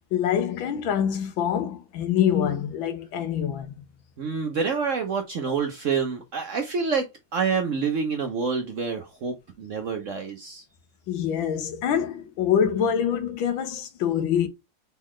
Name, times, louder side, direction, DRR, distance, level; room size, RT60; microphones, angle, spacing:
voice 1, 0.1-3.7 11.1-14.5, left 8 dB, 90° left, 1.6 m, -25 dB
voice 2, 4.2-10.6, right 5 dB, 60° right, 0.8 m, -27 dB
4.2 x 3.8 x 3.0 m
omnidirectional pair, 2.1 m